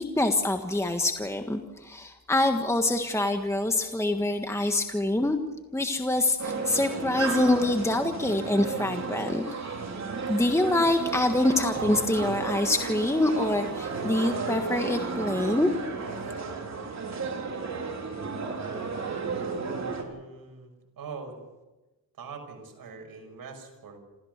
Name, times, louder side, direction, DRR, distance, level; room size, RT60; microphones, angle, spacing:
voice 1, 0.0-5.4 5.7-9.4 10.3-16.3, left 1 dB, 5° left, 5 dB, 1.6 m, -25 dB
sound 1, 6.4-20.0, right 4 dB, 45° right, 3.8 m, -33 dB
voice 2, 19.7-21.4 22.2-24.0, right 5 dB, 65° right, 4 dB, 6.1 m, -43 dB
27.0 x 15.0 x 6.7 m, 1.1 s
cardioid pair, 85°, 37 cm